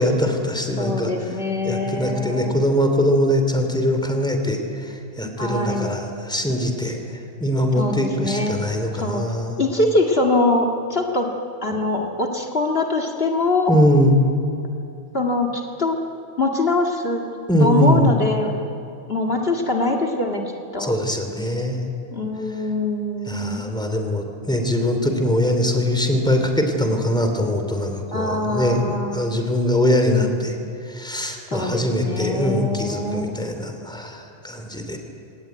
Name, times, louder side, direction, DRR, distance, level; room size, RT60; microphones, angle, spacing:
voice 1, 0.0-1.4 1.6-9.6 13.7-14.2 17.5-18.1 20.8-21.8 23.3-30.6 30.9-35.0, left 1 dB, 5° left, 5 dB, 2.9 m, -22 dB
voice 2, 0.8-2.5 5.4-5.9 7.8-8.5 8.9-9.2 9.6-11.3 11.6-13.7 15.1-16.0 16.4-17.2 17.6-18.7 19.1-20.4 20.7-20.9 22.1-23.7 28.1-29.4 31.5-33.3, left 2 dB, 50° left, 1 dB, 2.2 m, -23 dB
29.5 x 18.0 x 9.4 m, 2.6 s
omnidirectional pair, 1.3 m